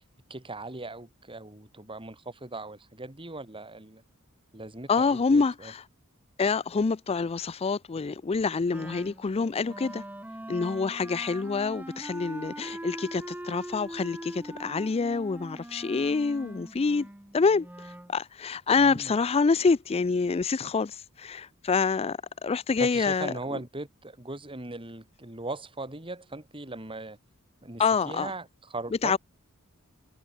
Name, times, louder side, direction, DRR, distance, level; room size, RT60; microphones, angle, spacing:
voice 1, 0.3-4.0 4.5-5.7 18.8-19.1 22.8-27.2 27.6-29.2, right 2 dB, 25° right, 3.4 m, -39 dB
voice 2, 4.9-5.8 6.4-10.0 10.5-17.1 17.3-23.3 27.8-28.3 29.0-29.2, left 4 dB, 25° left, 0.4 m, -26 dB
Wind instrument woodwind instrument, 8.7-18.1, right 1 dB, 10° right, 0.9 m, -42 dB
head